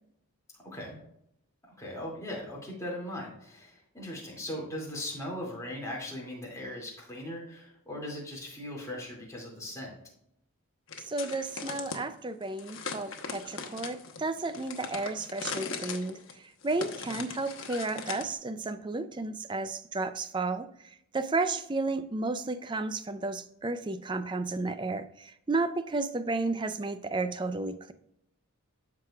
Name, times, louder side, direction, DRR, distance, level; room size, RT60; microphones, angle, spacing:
voice 1, 0.6-1.0 1.8-10.0 17.1-17.2, left 1 dB, 15° left, -3 dB, 2.5 m, -39 dB
sound 1, 10.9-12.0 12.6-18.3, left 5 dB, 60° left, 1.0 m, -39 dB
voice 2, 11.0-27.9, right 3 dB, 20° right, 11 dB, 0.4 m, -33 dB
13.5 x 4.8 x 2.4 m, 0.75 s
head